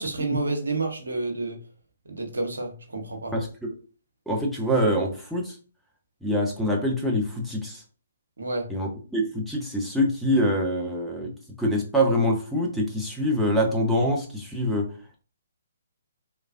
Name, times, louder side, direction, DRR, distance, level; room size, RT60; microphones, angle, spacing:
voice 1, 0.0-1.6 2.0-3.3 8.4-8.7, right 3 dB, 70° right, 3 dB, 0.9 m, -29 dB
voice 2, 3.3-3.7 4.3-5.6 6.2-7.8 8.7-11.3 11.6-14.9, equal, ahead, -3 dB, 0.7 m, -25 dB
3.1 x 2.3 x 2.5 m, 0.37 s
figure-of-eight pair, 130°, 0 cm